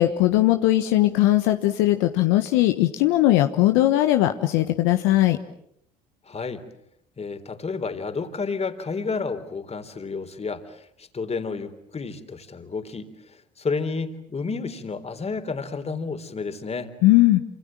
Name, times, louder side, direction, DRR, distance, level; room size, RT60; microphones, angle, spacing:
voice 1, 0.0-5.4 17.0-17.4, left 15 dB, 75° left, 7 dB, 1.4 m, -19 dB
voice 2, 6.3-6.6 7.2-16.9, left 4 dB, 30° left, 8 dB, 3.8 m, -31 dB
28.0 x 26.5 x 7.6 m, 0.74 s
hypercardioid pair, 60°, 20 cm